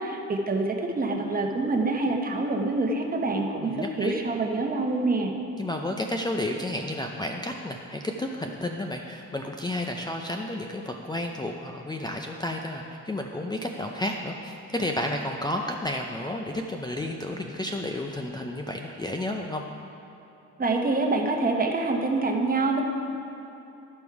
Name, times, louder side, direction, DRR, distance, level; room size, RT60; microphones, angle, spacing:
voice 1, 0.0-5.3 20.6-22.8, right 3 dB, 30° right, 2 dB, 1.1 m, -26 dB
voice 2, 3.6-4.2 5.6-19.6, left 1 dB, 15° left, 2 dB, 0.5 m, -31 dB
12.5 x 5.3 x 4.7 m, 2.8 s
cardioid pair, 90°, 30 cm